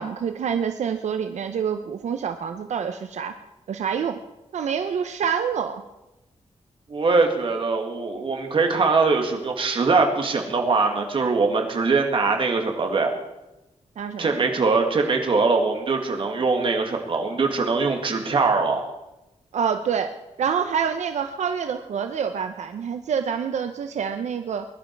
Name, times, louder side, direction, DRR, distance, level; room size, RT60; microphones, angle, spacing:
voice 1, 0.0-3.3 3.7-4.2 4.5-5.8 14.0-14.4 19.5-20.1 20.4-24.7, right 7 dB, 85° right, 7 dB, 0.8 m, -27 dB
voice 2, 6.9-13.1 14.2-18.9, right 4 dB, 50° right, 3 dB, 2.1 m, -22 dB
21.0 x 11.5 x 4.7 m, 0.99 s
wide cardioid pair, 165°, 12 cm